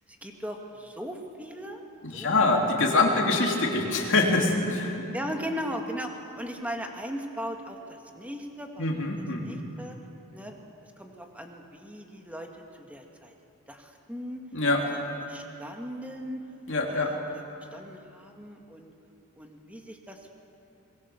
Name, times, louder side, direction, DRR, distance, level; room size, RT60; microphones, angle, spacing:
voice 1, 0.1-1.8 2.1-2.5 3.0-3.2 3.9-4.3 5.1-8.9 9.4-10.0 10.3-13.3 13.7-14.4 15.2-16.5 16.9-17.4 17.7-18.9 19.4-20.3, equal, 5° right, 2 dB, 1.8 m, -38 dB
voice 2, 2.0-5.0 8.8-9.6 14.5-14.8 16.7-17.1, left 2 dB, 55° left, 0 dB, 3.1 m, -24 dB
24.0 x 21.5 x 7.2 m, 2.8 s
head